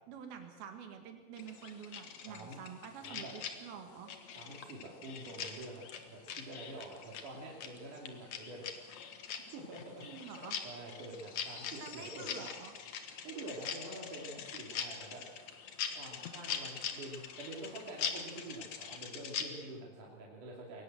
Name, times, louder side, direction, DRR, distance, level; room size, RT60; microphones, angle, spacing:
voice 1, 0.1-4.1 10.0-10.6 11.8-12.7, right 7 dB, 90° right, 5 dB, 3.7 m, -48 dB
sound 1, 1.4-19.4, left 7 dB, 55° left, 2.5 m, -43 dB
voice 2, 2.3-2.6 3.0-3.3 4.3-8.7 9.4-10.3 10.6-12.5 13.2-15.3 15.9-20.8, right 2 dB, 60° right, -2 dB, 4.2 m, -47 dB
22.5 x 19.5 x 7.8 m, 1.4 s
omnidirectional pair, 4.2 m